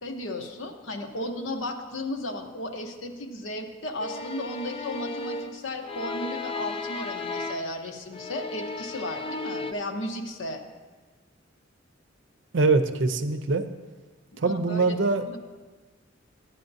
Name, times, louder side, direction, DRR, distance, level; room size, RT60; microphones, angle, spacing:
voice 1, 0.0-10.6 14.3-14.9 15.3-15.4, left 1 dB, 75° left, 4 dB, 0.9 m, -34 dB
sound 1, 4.0-7.8 8.1-9.7, left 3 dB, 30° left, 0.4 m, -35 dB
voice 2, 12.5-13.6 14.4-15.4, right 3 dB, 65° right, 9 dB, 0.6 m, -23 dB
13.0 x 9.2 x 2.7 m, 1.3 s
head